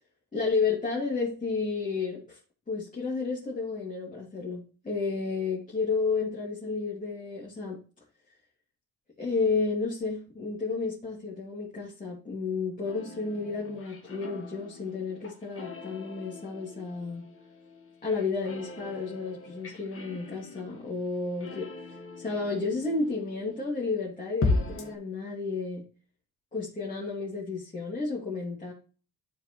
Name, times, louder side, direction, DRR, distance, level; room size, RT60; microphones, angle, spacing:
voice 1, 0.3-2.4 2.7-7.8 9.2-17.2 18.0-21.7 22.2-25.8 26.5-28.7, left 4 dB, 25° left, -5 dB, 2.7 m, -31 dB
sound 1, 12.9-23.7 24.4-25.0, left 3 dB, 45° left, 1.8 m, -37 dB
11.0 x 4.8 x 3.1 m, 0.39 s
cardioid pair, 90°, 30 cm